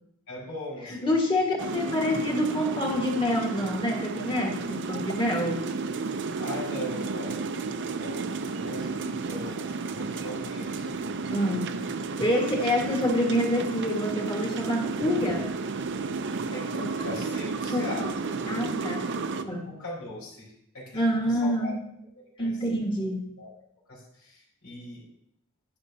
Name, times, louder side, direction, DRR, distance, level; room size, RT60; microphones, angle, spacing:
voice 1, 0.3-1.4 6.4-7.4 7.9-10.9 16.2-18.0 19.6-21.7 22.1-22.6 23.0-23.1 23.4-23.5 23.9-25.0, left 1 dB, 80° left, -6 dB, 4.8 m, -40 dB
voice 2, 0.8-5.7 11.3-11.8 12.2-15.5 17.7-18.1 18.4-19.7 20.9-21.8 22.4-23.3, left 1 dB, 20° left, 1 dB, 1.8 m, -27 dB
sound 1, 1.6-19.4, right 4 dB, 55° right, 0.6 m, -32 dB
11.5 x 10.5 x 2.8 m, 0.74 s
head